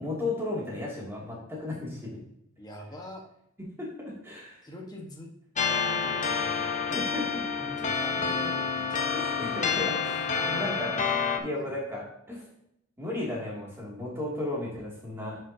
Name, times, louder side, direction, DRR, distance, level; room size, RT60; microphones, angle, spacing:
voice 1, 0.0-2.2 3.8-4.7 6.9-7.4 7.9-8.0 9.1-10.9 11.4-12.5 13.0-15.4, left 2 dB, 10° right, -5 dB, 2.5 m, -34 dB
voice 2, 2.6-3.2 4.6-5.3 5.7-6.9 7.6-9.1 10.3-11.0 11.5-11.7, left 1 dB, 20° left, 0 dB, 1.3 m, -43 dB
sound 1, 5.6-11.4, left 5 dB, 35° left, 0.7 m, -28 dB
9.6 x 5.6 x 2.8 m, 0.78 s
head